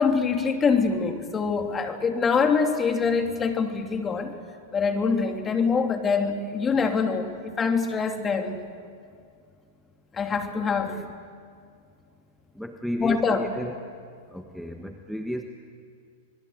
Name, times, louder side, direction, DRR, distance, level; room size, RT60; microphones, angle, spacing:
voice 1, 0.0-4.3 4.7-7.3 7.6-8.6 10.1-10.9 13.0-13.4, left 5 dB, 20° left, 4 dB, 2.8 m, -24 dB
voice 2, 10.5-11.1 12.6-13.8 14.3-15.4, equal, ahead, 4 dB, 1.4 m, -34 dB
27.0 x 21.0 x 7.9 m, 2.3 s
hypercardioid pair, 100°, 0 cm